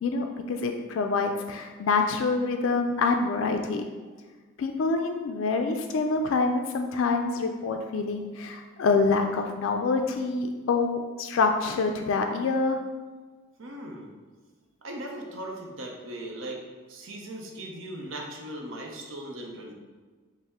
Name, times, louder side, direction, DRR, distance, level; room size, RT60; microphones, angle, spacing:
voice 1, 0.0-3.8 4.6-12.8, left 4 dB, 70° left, 5 dB, 0.3 m, -26 dB
voice 2, 13.6-14.1 14.8-16.6 16.9-19.7, right 1 dB, 70° right, 1 dB, 0.6 m, -38 dB
5.3 x 2.0 x 3.5 m, 1.4 s
head